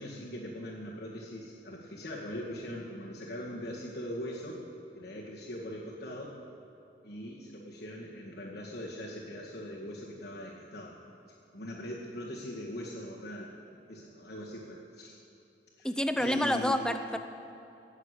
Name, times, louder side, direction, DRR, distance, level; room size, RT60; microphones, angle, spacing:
voice 1, 0.0-4.6 4.9-6.4 7.0-11.1 11.5-13.5 13.9-15.2 15.8-15.9 16.2-16.9, left 1 dB, 65° left, -7 dB, 2.2 m, -41 dB
voice 2, 15.8-17.2, left 1 dB, 5° left, 8 dB, 0.7 m, -28 dB
18.0 x 7.4 x 8.3 m, 2.9 s
head